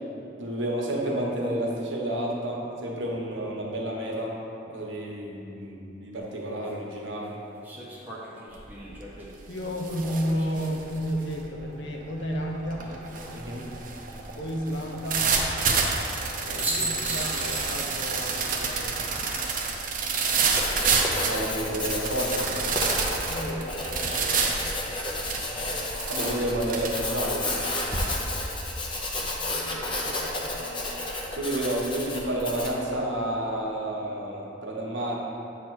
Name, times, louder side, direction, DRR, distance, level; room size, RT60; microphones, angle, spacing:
voice 1, 0.4-4.4 4.7-7.3 13.3-13.7 16.5-16.6 21.2-22.5 26.1-27.5 31.3-35.2, right 1 dB, 80° right, -2 dB, 1.2 m, -30 dB
sound 1, 6.2-6.3 7.6-10.9 12.7-13.3 16.1-16.3 16.6-18.1 18.4-18.5 20.9-21.4, right 2 dB, 10° right, 0.7 m, -36 dB
sound 2, 8.5-8.9 9.2-28.2, right 4 dB, 45° right, 0.6 m, -29 dB
voice 2, 9.5-12.9 14.4-15.3 16.4-19.1 23.1-24.6 29.1-30.9, equal, 70° left, 0 dB, 0.7 m, -33 dB
Writing, 20.4-32.8, left 2 dB, 25° left, 0.7 m, -32 dB
8.4 x 3.0 x 6.2 m, 2.9 s
head